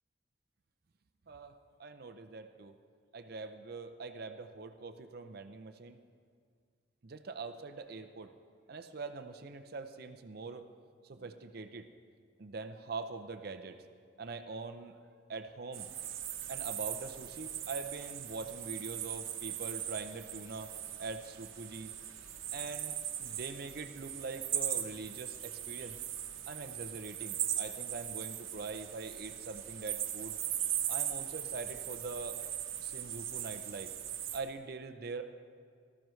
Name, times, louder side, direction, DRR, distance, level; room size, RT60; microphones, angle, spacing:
voice 1, 1.3-2.8 3.1-6.0 7.0-8.3 8.7-10.7 11.0-11.9 12.4-13.8 14.2-15.0 15.3-15.9 16.5-22.0 22.5-26.0 26.5-30.4 30.9-32.4 32.8-33.9 34.3-35.2, right 4 dB, 50° right, 8 dB, 0.5 m, -43 dB
sound 1, 15.7-34.4, right 11 dB, 85° right, 1.0 m, -39 dB
18.5 x 14.0 x 3.2 m, 2.1 s
head